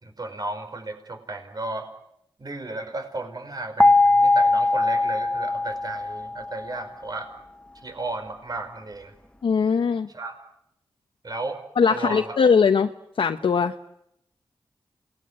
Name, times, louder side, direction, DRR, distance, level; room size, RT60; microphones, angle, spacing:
voice 1, 0.0-1.9 2.4-7.3 7.8-9.1 10.1-10.4 11.2-11.6 11.9-12.4, right 2 dB, 50° right, 7 dB, 5.2 m, -34 dB
sound 1, 3.8-6.8, left 2 dB, 10° left, 1.3 m, -20 dB
voice 2, 9.4-10.1 11.8-12.9 13.2-13.7, left 6 dB, 80° left, 6 dB, 1.0 m, -20 dB
28.0 x 20.5 x 9.7 m, 0.79 s
cardioid pair, 50°, 9 cm